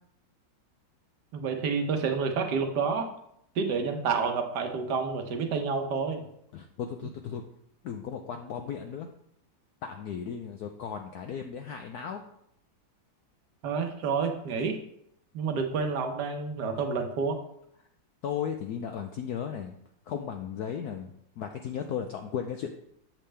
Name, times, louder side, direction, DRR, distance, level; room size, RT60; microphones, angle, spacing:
voice 1, 1.3-3.1 3.5-6.2 13.6-14.8 15.3-17.4, right 5 dB, 60° right, 4 dB, 1.4 m, -29 dB
voice 2, 6.5-7.4 7.8-9.1 9.8-12.2 18.2-19.7 20.1-22.7, left 8 dB, 85° left, 5 dB, 0.8 m, -35 dB
7.4 x 7.0 x 3.3 m, 0.73 s
omnidirectional pair, 2.2 m